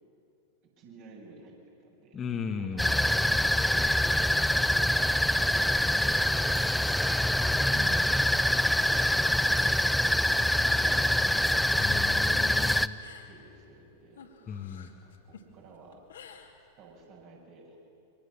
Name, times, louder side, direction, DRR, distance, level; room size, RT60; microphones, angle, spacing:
voice 1, 0.8-2.2 2.7-4.4 5.3-6.7 7.0-7.5 8.5-11.3 11.9-12.5 13.2-14.3 15.0-16.0 16.8-17.8, right 4 dB, 45° right, -1 dB, 7.2 m, -53 dB
voice 2, 2.1-3.0 7.7-8.1 11.8-13.0 14.5-14.9, left 6 dB, 25° left, 4 dB, 1.9 m, -36 dB
sound 1, 2.8-12.9, left 1 dB, ahead, 0.6 m, -25 dB
sound 2, 6.5-12.4, right 5 dB, 15° right, 3.1 m, -54 dB
sound 3, 7.9-9.7 10.0-11.3 11.6-17.0, left 7 dB, 65° left, 2.6 m, -52 dB
29.0 x 25.0 x 7.4 m, 2.7 s
figure-of-eight pair, 90°, 0 cm